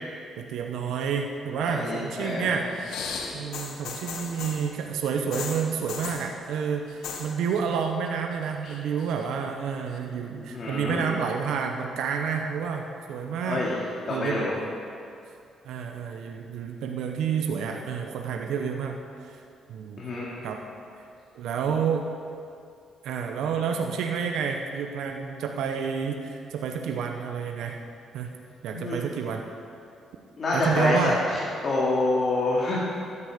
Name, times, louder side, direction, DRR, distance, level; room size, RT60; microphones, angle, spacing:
voice 1, 0.4-2.7 3.3-13.6 14.1-14.5 15.6-19.4 19.7-20.0 20.4-20.6 21.3-22.1 23.0-27.8 28.1-28.3 28.6-29.4 30.5-31.2, right 6 dB, 85° right, 3 dB, 0.8 m, -29 dB
voice 2, 1.6-2.5 10.5-11.1 13.4-13.8 14.1-14.5 20.0-20.2 28.7-29.0 30.4-31.1 31.6-32.8, left 2 dB, 45° left, -6 dB, 2.5 m, -26 dB
sound 1, 2.7-4.7 5.3-6.3 6.9-7.3 7.6-8.1 8.4-9.2 10.0-10.1, left 5 dB, 80° left, 1.4 m, -36 dB
13.0 x 9.8 x 5.1 m, 2.5 s
cardioid pair, 90°, 0 cm